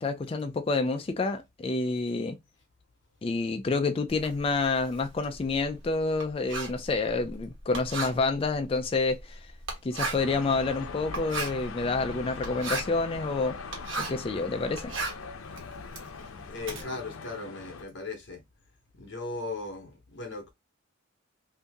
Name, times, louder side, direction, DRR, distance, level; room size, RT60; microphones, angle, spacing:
voice 1, 0.0-2.4 3.2-9.5 9.8-13.6 14.0-14.9, left 3 dB, 25° left, 0.3 m, -28 dB
Writing, 4.1-14.3 14.6-16.8, right 3 dB, 70° right, 1.4 m, -37 dB
sound 1, 10.1-17.8, left 5 dB, 85° left, 0.5 m, -41 dB
voice 2, 16.5-18.4 18.9-20.5, left 3 dB, 60° left, 0.9 m, -37 dB
2.8 x 2.6 x 3.4 m
head